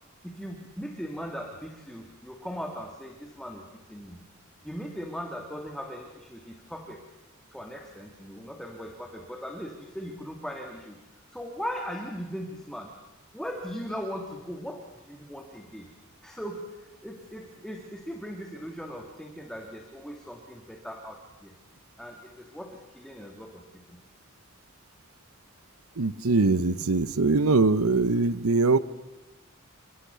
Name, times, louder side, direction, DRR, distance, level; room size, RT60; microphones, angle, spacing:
voice 1, 0.2-4.2 4.6-7.1 7.5-11.0 11.3-13.0 13.3-15.9 16.2-21.5 22.0-24.0, equal, 5° left, 2 dB, 2.1 m, -39 dB
voice 2, 26.0-28.8, right 3 dB, 90° right, 15 dB, 0.9 m, -22 dB
28.5 x 23.5 x 6.9 m, 1.0 s
head